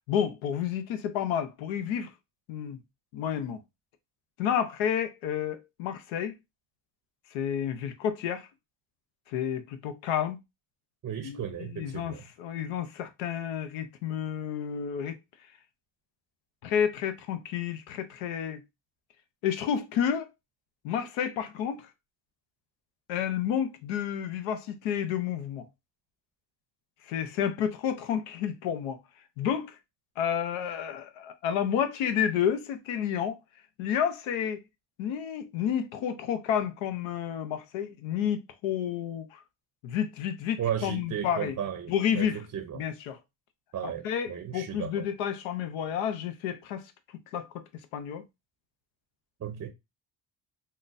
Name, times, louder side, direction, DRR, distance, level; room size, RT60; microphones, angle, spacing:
voice 1, 0.1-2.1 2.5-2.8 3.1-3.6 4.4-6.3 7.3-8.5 9.3-10.4 11.2-15.2 16.6-18.6 19.4-20.3 20.8-21.9 23.1-25.7 27.0-29.0 29.4-29.8 30.2-33.4 33.8-34.6 35.0-39.4 39.8-41.5 41.9-42.4 42.7-43.2 43.8-46.9 47.3-47.6 47.9-48.2, left 9 dB, 90° left, 0.6 m, -30 dB
voice 2, 11.0-12.2 40.6-42.8 43.7-45.1 49.4-49.7, right 9 dB, 35° right, 0.5 m, -35 dB
3.7 x 2.1 x 2.5 m
supercardioid pair, 70°, 46 cm